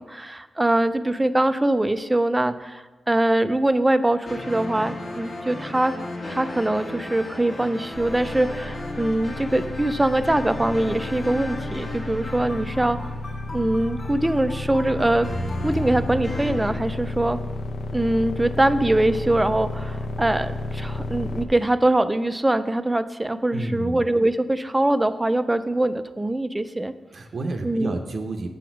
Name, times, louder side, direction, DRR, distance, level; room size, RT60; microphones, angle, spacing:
voice 1, 0.0-6.0 6.3-13.0 13.5-15.3 15.6-17.4 17.9-26.9 27.6-28.0, right 1 dB, 10° right, 12 dB, 0.3 m, -23 dB
sound 1, 4.2-16.7, left 1 dB, 35° left, 1.2 m, -34 dB
sound 2, 7.9-21.5, left 2 dB, 65° left, 0.6 m, -32 dB
voice 2, 23.5-24.0 27.1-28.5, right 2 dB, 50° right, 4 dB, 0.6 m, -30 dB
7.0 x 6.0 x 5.9 m, 1.2 s
wide cardioid pair, 145°, 0 cm